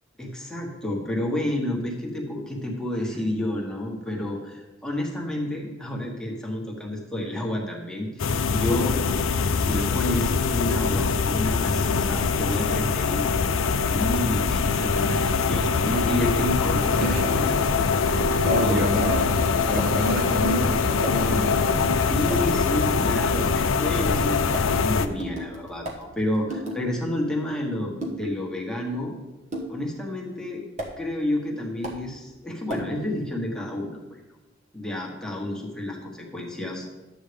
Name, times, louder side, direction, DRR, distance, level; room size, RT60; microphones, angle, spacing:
voice 1, 0.2-9.0 9.5-13.3 13.8-17.5 18.5-18.9 22.1-29.1 29.7-30.7 31.0-34.2 34.7-36.9, left 1 dB, 5° left, -2 dB, 1.4 m, -30 dB
sound 1, 8.2-25.1, left 5 dB, 85° left, 0.5 m, -23 dB
sound 2, 15.9-22.6 24.2-26.8 28.0-28.3 29.5-29.8 30.8-30.9 31.8-32.0 32.7-32.9, right 1 dB, 35° right, 1.3 m, -37 dB
voice 2, 18.4-19.3 19.7-21.8, equal, 55° right, 1 dB, 1.3 m, -28 dB
11.5 x 8.1 x 3.4 m, 1.1 s
head